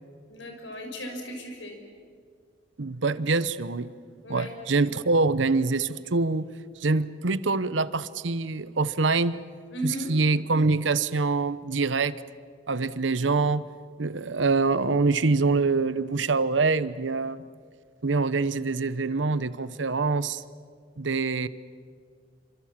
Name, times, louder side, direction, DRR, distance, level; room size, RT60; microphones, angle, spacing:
voice 1, 0.3-1.8 4.2-4.5 9.7-10.1, equal, 75° left, 4 dB, 6.1 m, -35 dB
voice 2, 2.8-3.9 4.3-6.5 6.8-9.4 9.8-12.2 12.7-13.6 14.0-17.4 18.0-20.4 21.0-21.5, right 3 dB, 75° right, 15 dB, 0.9 m, -25 dB
28.5 x 25.5 x 7.4 m, 2.1 s
head